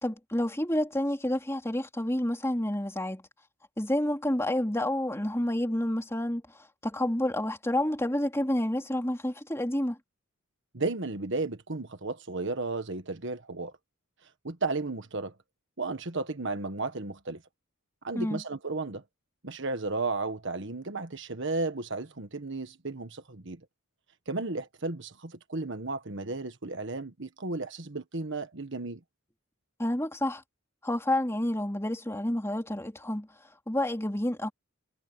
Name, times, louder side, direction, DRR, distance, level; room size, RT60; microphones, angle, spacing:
voice 1, 0.0-3.2 3.8-6.4 6.8-10.0 18.1-18.4 29.8-30.4 30.8-33.3 33.7-34.5, left 1 dB, 15° left, 3.3 m, -29 dB
voice 2, 10.7-13.7 14.4-15.3 15.8-17.4 18.0-19.0 19.4-23.6 24.3-29.0, right 3 dB, 60° right, 1.5 m, -34 dB
head